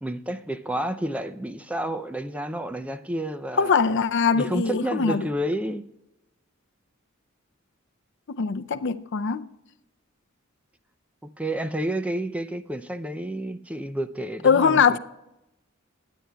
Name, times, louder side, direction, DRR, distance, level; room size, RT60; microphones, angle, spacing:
voice 1, 0.0-3.7 4.3-5.8 11.4-15.0, right 1 dB, 5° right, 0.4 m, -30 dB
voice 2, 3.6-5.3 8.3-9.4 14.4-15.0, left 6 dB, 60° left, 0.5 m, -22 dB
22.5 x 10.0 x 2.3 m
head